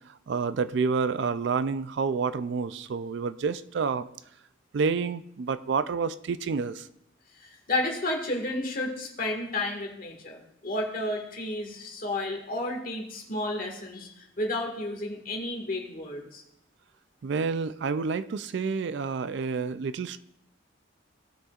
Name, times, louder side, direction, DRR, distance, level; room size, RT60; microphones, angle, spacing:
voice 1, 0.1-4.1 4.7-6.9 17.2-20.2, right 5 dB, 60° right, 13 dB, 0.4 m, -29 dB
voice 2, 7.4-16.4, left 2 dB, 45° left, 1 dB, 1.8 m, -32 dB
17.5 x 6.3 x 2.4 m, 0.77 s
head